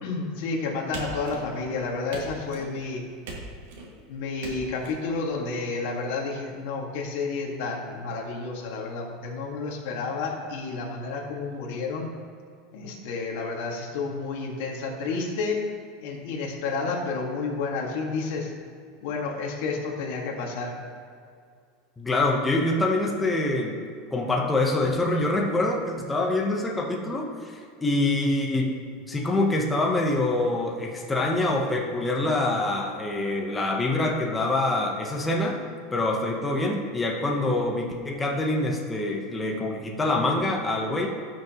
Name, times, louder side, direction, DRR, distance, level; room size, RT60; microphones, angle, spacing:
voice 1, 0.0-3.0 4.1-12.1 12.7-15.6 16.0-18.5 19.0-20.8 28.2-28.3, left 4 dB, 65° left, -1 dB, 1.8 m, -30 dB
sound 1, 0.9-1.7 2.1-2.7 3.2-3.9 4.4-4.9, right 3 dB, 85° right, 2.0 m, -39 dB
voice 2, 22.0-23.8 24.1-28.7 29.1-35.6 35.9-41.1, left 2 dB, 10° left, -1 dB, 1.0 m, -25 dB
16.5 x 6.3 x 3.0 m, 2.2 s
supercardioid pair, 155°, 0 cm